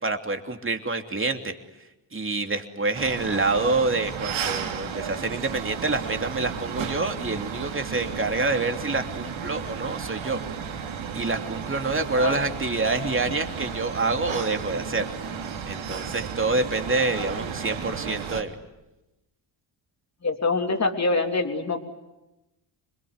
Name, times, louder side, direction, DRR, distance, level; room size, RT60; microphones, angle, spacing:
voice 1, 0.0-1.5 2.1-10.4 11.1-15.0 15.7-18.5, right 3 dB, 25° right, 5 dB, 3.1 m, -27 dB
sound 1, 2.9-18.4, right 7 dB, 70° right, 2.9 m, -34 dB
voice 2, 20.2-21.8, left 3 dB, 30° left, 4 dB, 3.5 m, -25 dB
26.5 x 21.5 x 9.7 m, 0.98 s
cardioid pair, 75°, 49 cm